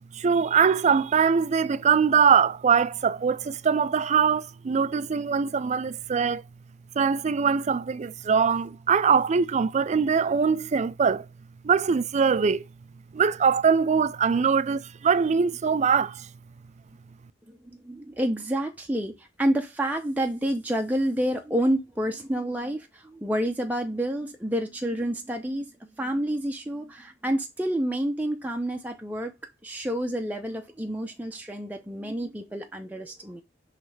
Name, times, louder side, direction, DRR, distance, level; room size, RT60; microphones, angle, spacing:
voice 1, 0.1-6.4 7.0-11.3 11.6-12.6 13.1-16.3, right 6 dB, 40° right, 0.4 m, -22 dB
voice 2, 17.8-25.7 26.0-29.3 29.6-33.4, right 1 dB, 10° right, 0.7 m, -29 dB
6.2 x 3.3 x 4.7 m
head